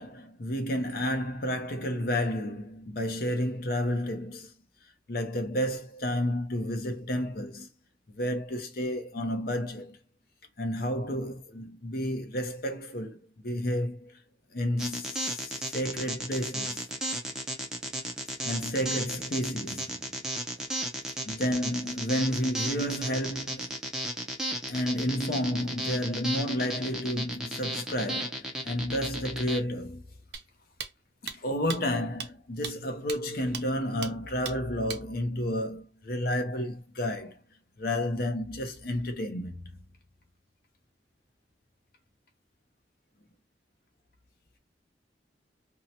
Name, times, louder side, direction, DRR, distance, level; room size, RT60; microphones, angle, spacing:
voice 1, 0.0-4.5 5.1-7.7 8.1-10.0 10.6-13.2 13.4-14.2 14.5-16.9 18.4-20.1 21.2-23.6 24.7-30.0 31.2-37.4 37.8-39.8, equal, 55° left, 0.7 m, -31 dB
sound 1, 14.8-29.6, right 1 dB, 5° right, 0.5 m, -34 dB
sound 2, 30.3-30.4 30.8-30.9 31.3-31.4 31.7-31.8 32.2-32.3 32.6-32.7 33.1-33.2 33.5-33.6 34.0-34.1 34.4-34.6 34.9-35.0, right 7 dB, 70° right, 0.5 m, -36 dB
2.8 x 2.1 x 2.8 m
head